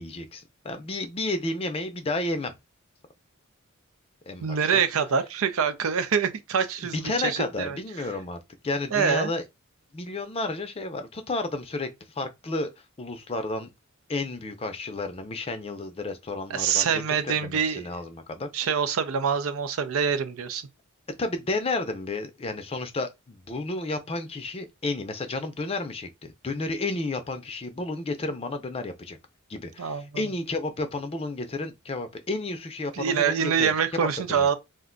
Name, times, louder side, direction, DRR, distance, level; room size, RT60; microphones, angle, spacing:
voice 1, 0.0-2.5 4.3-4.7 6.9-8.4 8.6-9.4 9.9-11.9 12.2-12.7 13.0-13.7 14.1-18.5 21.2-29.2 29.5-34.5, left 2 dB, 30° left, 0.5 m, -31 dB
voice 2, 4.4-7.8 8.9-9.3 16.5-17.9 18.5-20.7 29.8-30.2 32.9-34.6, right 7 dB, 85° right, 0.5 m, -25 dB
2.5 x 2.2 x 3.7 m
head